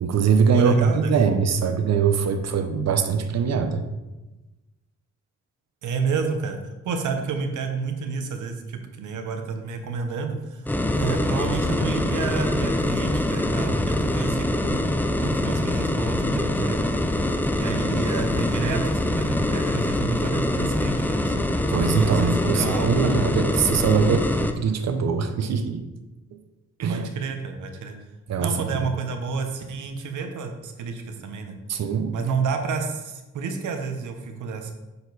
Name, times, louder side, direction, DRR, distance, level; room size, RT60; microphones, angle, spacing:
voice 1, 0.0-3.8 21.7-24.3 24.6-25.9 26.8-27.1 28.3-28.8 31.7-32.2, right 6 dB, 60° right, 8 dB, 0.7 m, -22 dB
voice 2, 0.5-1.1 5.8-6.6 6.8-14.8 15.2-16.8 17.5-21.4 22.0-23.2 26.9-28.0 28.4-31.5 32.1-34.7, right 5 dB, 85° right, 5 dB, 0.9 m, -30 dB
sound 1, 10.7-24.5, left 1 dB, 5° left, 0.4 m, -24 dB
6.8 x 4.4 x 4.0 m, 1.1 s
cardioid pair, 120°, 29 cm